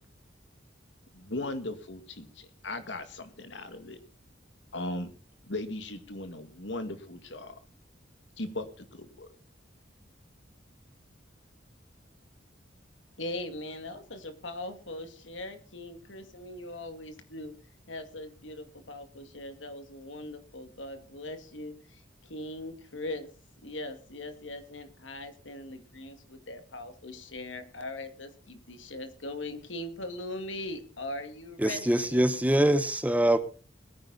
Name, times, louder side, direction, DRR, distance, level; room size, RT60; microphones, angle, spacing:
voice 1, 1.1-4.0 4.7-5.1 5.5-7.6 8.4-9.3, left 2 dB, 70° left, 2.1 m, -38 dB
voice 2, 13.2-17.5 17.9-23.3 23.6-32.3, left 1 dB, 85° left, 2.2 m, -40 dB
voice 3, 31.6-33.4, right 1 dB, 10° right, 0.9 m, -24 dB
21.5 x 9.7 x 4.1 m
head